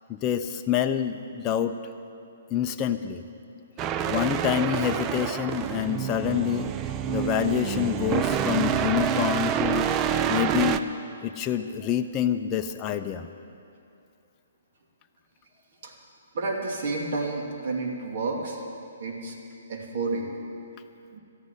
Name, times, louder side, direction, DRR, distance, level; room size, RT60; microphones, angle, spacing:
voice 1, 0.1-1.8 2.5-3.2 4.1-6.7 7.1-9.9 10.3-10.8 11.2-13.3, left 9 dB, 25° left, 6 dB, 0.6 m, -27 dB
sound 1, 3.8-10.8, right 9 dB, 25° right, 0.5 m, -27 dB
voice 2, 16.3-18.6 19.0-19.4 19.7-20.3 21.1-21.2, right 3 dB, 55° right, 1 dB, 2.6 m, -30 dB
13.0 x 9.5 x 9.9 m, 2.7 s
hypercardioid pair, 135°, 0 cm